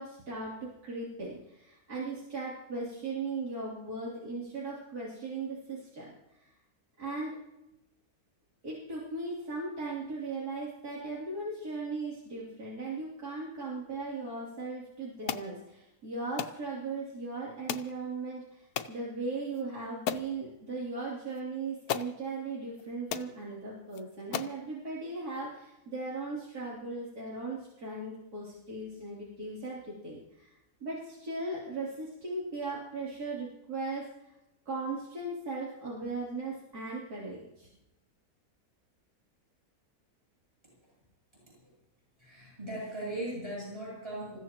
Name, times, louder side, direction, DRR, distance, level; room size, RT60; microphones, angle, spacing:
voice 1, 0.0-6.5 7.0-7.4 8.6-34.3 34.7-37.7, right 3 dB, 80° right, -6 dB, 3.7 m, -38 dB
sound 1, 15.3-15.5 16.4-16.6 17.7-17.9 18.8-19.0 19.5-19.6 20.1-20.3 21.4-21.5 21.9-22.1 22.8-22.9 23.1-23.3 23.9-24.0 24.3-24.6, left 9 dB, 85° left, 1.3 m, -34 dB
voice 2, 41.3-41.7 42.2-44.4, right 1 dB, 15° right, -6 dB, 8.1 m, -39 dB
27.5 x 15.5 x 3.0 m, 0.90 s
omnidirectional pair, 1.6 m